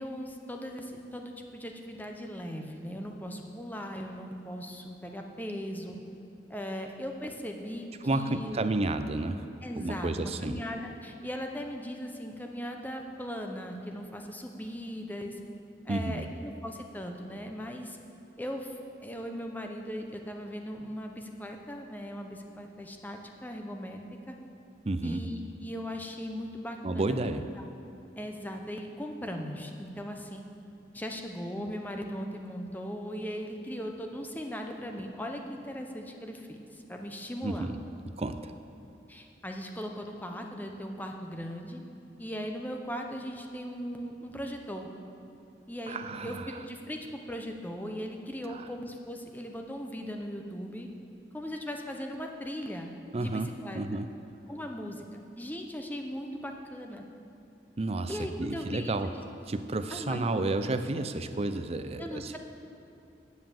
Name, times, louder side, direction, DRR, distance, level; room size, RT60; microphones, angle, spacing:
voice 1, 0.0-6.0 6.5-8.7 9.6-15.4 15.8-18.0 18.4-24.0 24.3-24.4 25.0-27.6 28.2-30.4 30.9-37.7 39.1-41.8 42.2-44.9 45.7-50.9 51.3-53.8 54.5-55.0 55.4-57.0 58.1-59.1 59.9-60.2 60.5-60.6 62.0-62.4, equal, 10° left, 3 dB, 0.8 m, -38 dB
voice 2, 8.0-9.4 9.8-10.6 15.9-16.2 24.8-25.2 26.8-27.5 37.4-37.8 38.2-38.5 45.9-46.5 48.5-48.7 53.1-54.1 57.8-59.1 59.5-62.4, right 2 dB, 35° right, 9 dB, 0.5 m, -31 dB
9.7 x 7.6 x 7.2 m, 2.8 s
head